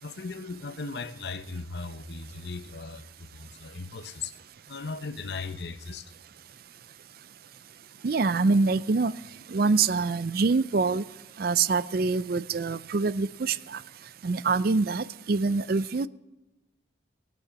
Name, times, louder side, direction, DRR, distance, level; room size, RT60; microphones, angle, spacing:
voice 1, 0.0-4.3 4.7-6.1, left 4 dB, 60° left, 0.8 m, -37 dB
voice 2, 8.0-9.1 9.5-11.0 11.4-13.8 14.2-16.1, right 4 dB, 50° right, 0.4 m, -25 dB
19.5 x 9.3 x 7.2 m
head